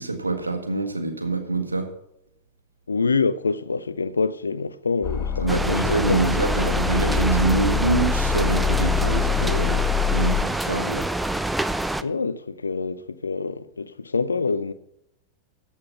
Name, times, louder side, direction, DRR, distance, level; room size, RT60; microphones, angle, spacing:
voice 1, 0.0-1.9 5.4-11.0, right 3 dB, 80° right, 1.7 m, -25 dB
voice 2, 2.9-6.3 12.0-14.7, left 4 dB, 75° left, 0.6 m, -26 dB
sound 1, 5.0-10.4, left 6 dB, 35° left, 1.2 m, -25 dB
sound 2, 5.5-12.0, right 1 dB, 5° right, 0.5 m, -26 dB
14.0 x 5.7 x 5.7 m
figure-of-eight pair, 90°, 0 cm